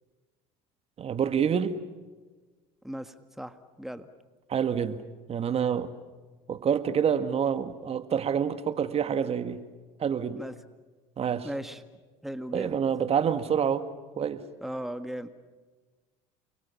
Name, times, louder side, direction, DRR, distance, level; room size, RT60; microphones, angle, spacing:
voice 1, 1.0-1.8 4.5-5.0 5.3-5.9 6.5-9.6 10.0-10.4 11.2-11.5 12.5-13.9 14.2-14.4, right 7 dB, 40° right, 11 dB, 1.7 m, -27 dB
voice 2, 2.8-4.1 10.4-10.6 11.4-11.8 12.2-12.8 14.6-15.3, equal, ahead, 10 dB, 1.7 m, -37 dB
29.0 x 23.0 x 7.1 m, 1.3 s
supercardioid pair, 80°, 16 cm